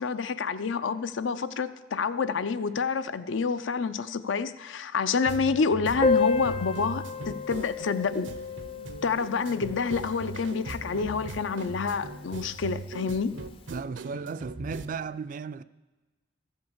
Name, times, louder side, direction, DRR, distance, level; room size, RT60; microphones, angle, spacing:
voice 1, 0.0-8.3 9.0-13.3, left 5 dB, 85° left, 0.5 m, -28 dB
sound 1, 5.3-14.9, right 3 dB, 80° right, 0.7 m, -40 dB
Piano, 6.0-11.4 11.6-11.7 11.9-12.1 12.4-12.5 13.3-13.5, left 4 dB, 30° left, 0.4 m, -31 dB
voice 2, 13.7-15.6, right 5 dB, 45° right, 0.3 m, -35 dB
13.5 x 5.5 x 7.2 m
head